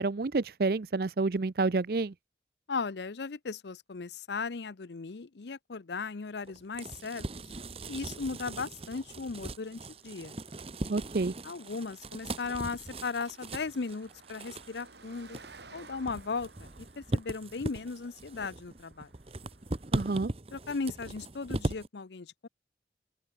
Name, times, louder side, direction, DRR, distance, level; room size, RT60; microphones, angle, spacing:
voice 1, 0.0-2.1 10.9-11.3 19.9-20.3, right 3 dB, 55° right, 0.5 m, -29 dB
voice 2, 2.7-7.2 7.9-10.4 11.4-15.4 15.7-19.1 20.5-22.5, left 4 dB, 70° left, 0.7 m, -37 dB
sound 1, 6.4-21.9, right 2 dB, 35° right, 1.1 m, -39 dB
Car passing by, 7.1-20.1, right 3 dB, 75° right, 7.5 m, -58 dB
open air
head